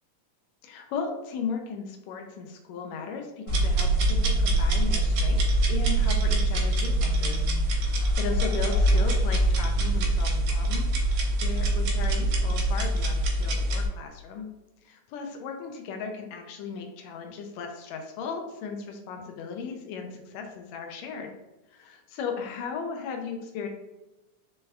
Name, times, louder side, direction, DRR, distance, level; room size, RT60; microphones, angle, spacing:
voice 1, 0.6-14.5 14.8-21.3 21.7-23.7, left 5 dB, 90° left, 3 dB, 1.5 m, -36 dB
sound 1, 3.5-10.0, left 1 dB, 65° left, 2.0 m, -33 dB
sound 2, 3.5-13.9, right 1 dB, 80° right, 2.2 m, -24 dB
5.2 x 3.3 x 2.3 m, 0.99 s
omnidirectional pair, 3.6 m